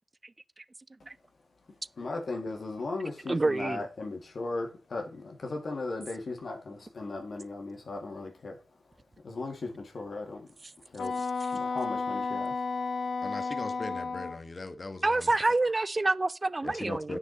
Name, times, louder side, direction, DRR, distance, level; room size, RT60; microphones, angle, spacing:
voice 1, 2.0-8.6 9.2-10.5 10.9-11.2 11.5-12.5, left 3 dB, 55° left, 2.1 m, -37 dB
voice 2, 3.3-3.8 15.0-17.2, right 2 dB, 25° right, 0.4 m, -27 dB
Wind instrument woodwind instrument, 11.0-14.4, left 4 dB, 80° left, 1.2 m, -32 dB
voice 3, 13.2-15.3 16.6-17.2, left 2 dB, 35° left, 1.2 m, -39 dB
9.6 x 6.2 x 4.0 m
wide cardioid pair, 100°, 0 cm